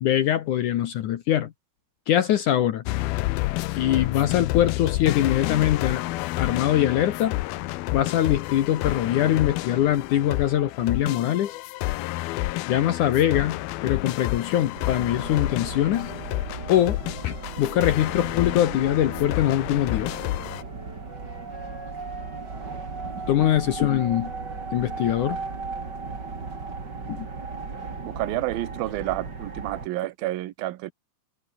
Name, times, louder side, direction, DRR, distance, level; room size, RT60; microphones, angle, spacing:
voice 1, 0.0-1.5 2.1-2.8 3.7-6.0 6.4-7.4 7.9-11.6 12.7-16.1 16.7-17.0 17.2-20.2 23.3-24.3 24.7-25.4 27.1-27.3, left 12 dB, 65° left, 2.3 m, -23 dB
sound 1, 2.9-20.6, left 19 dB, 90° left, 2.6 m, -29 dB
sound 2, 14.7-29.9, right 4 dB, 30° right, 3.5 m, -36 dB
Wind instrument woodwind instrument, 19.8-26.8, left 2 dB, 30° left, 8.3 m, -51 dB
voice 2, 28.0-30.9, right 16 dB, 75° right, 2.8 m, -29 dB
omnidirectional pair, 4.4 m